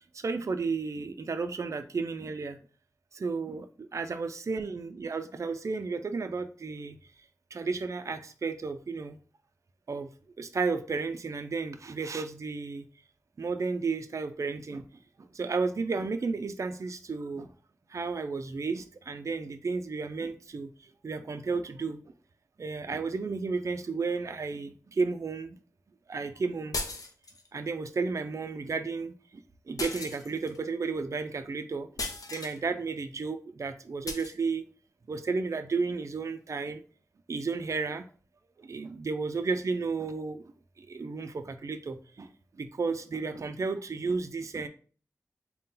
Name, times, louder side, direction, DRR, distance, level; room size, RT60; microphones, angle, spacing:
voice 1, 0.1-2.6 3.1-3.7 3.9-7.0 7.5-9.2 9.9-10.1 10.4-12.9 13.4-14.9 15.3-17.5 17.9-20.7 21.0-22.0 22.6-25.6 26.1-26.8 27.5-31.9 32.3-34.6 35.1-36.8 37.3-38.1 38.6-40.4 40.8-44.7, right 4 dB, 55° right, 8 dB, 0.3 m, -33 dB
sound 1, 26.7-27.5 29.8-30.6 32.0-32.6 34.1-34.3, left 2 dB, 75° left, 0.6 m, -36 dB
3.7 x 2.2 x 4.0 m, 0.41 s
wide cardioid pair, 55°, 6 cm